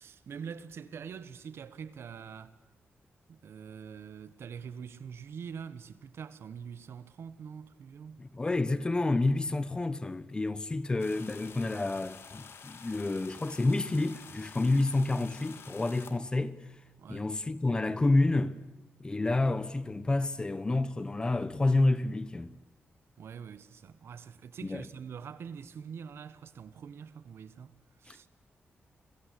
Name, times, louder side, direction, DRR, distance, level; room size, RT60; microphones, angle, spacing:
voice 1, 0.0-2.5 3.3-8.2 17.0-17.3 23.2-28.3, right 7 dB, 70° right, 1.5 m, -44 dB
voice 2, 8.2-16.6 17.1-18.6 19.0-22.5 24.6-24.8 28.1-28.2, left 2 dB, 20° left, 1.1 m, -29 dB
sound 1, 11.0-16.2, left 6 dB, 70° left, 2.6 m, -50 dB
30.0 x 22.0 x 8.6 m
wide cardioid pair, 165°, 4 cm